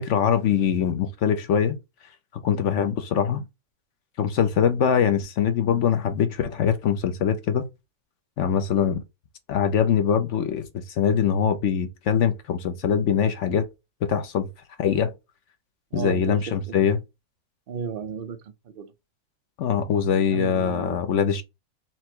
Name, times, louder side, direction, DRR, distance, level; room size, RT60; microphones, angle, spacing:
voice 1, 0.0-1.8 2.3-3.4 4.2-7.6 8.4-9.0 9.5-13.7 14.0-14.5 14.8-15.1 15.9-17.0 19.6-21.4, left 8 dB, 65° left, 0.8 m, -23 dB
voice 2, 15.9-16.8 17.7-18.9 20.3-21.0, right 6 dB, 50° right, 0.7 m, -34 dB
4.4 x 2.1 x 4.4 m
omnidirectional pair, 1.7 m